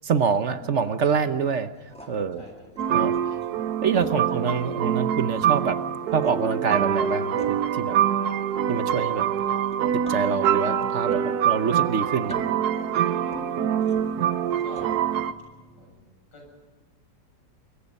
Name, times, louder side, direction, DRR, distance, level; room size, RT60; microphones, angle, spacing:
voice 1, 0.0-1.7 2.1-2.4 2.9-3.2 3.8-5.8 6.1-8.0 8.7-9.2 9.9-12.4, right 6 dB, 50° right, 11 dB, 1.0 m, -26 dB
sound 1, 0.6-15.9, equal, 5° left, 1.8 m, -44 dB
voice 2, 2.0-2.7 4.3-4.5 13.9-14.3 14.6-15.0 15.7-16.0 16.3-16.4, left 1 dB, 85° left, 1 dB, 8.1 m, -46 dB
sound 2, 2.8-15.3, right 9 dB, 65° right, 1.4 m, -25 dB
24.5 x 22.5 x 5.4 m, 1.4 s
omnidirectional pair, 1.9 m